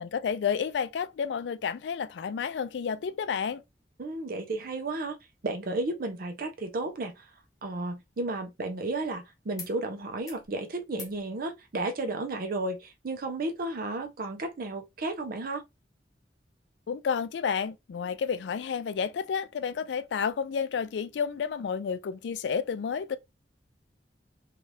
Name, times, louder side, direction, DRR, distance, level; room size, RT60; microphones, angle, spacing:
voice 1, 0.0-3.6 16.9-23.2, left 6 dB, 80° left, 0.3 m, -31 dB
voice 2, 4.0-5.2 5.4-7.3 7.6-15.6, right 2 dB, 55° right, 0.5 m, -33 dB
sound 1, 9.5-9.8 10.1-10.5 10.9-11.2 12.5-12.6, left 4 dB, 20° left, 0.8 m, -48 dB
2.7 x 2.3 x 3.2 m
head